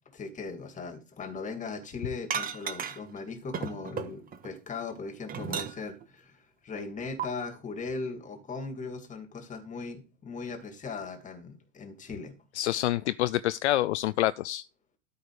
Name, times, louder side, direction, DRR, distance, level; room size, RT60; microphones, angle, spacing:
voice 1, 0.1-12.3, left 4 dB, 20° left, 2.3 m, -39 dB
sound 1, 2.3-3.2 3.5-4.5 4.9-6.0 7.2-7.3, right 7 dB, 20° right, 1.3 m, -34 dB
voice 2, 12.5-14.7, left 15 dB, 60° left, 0.5 m, -27 dB
12.5 x 5.2 x 4.9 m
figure-of-eight pair, 95°, 39 cm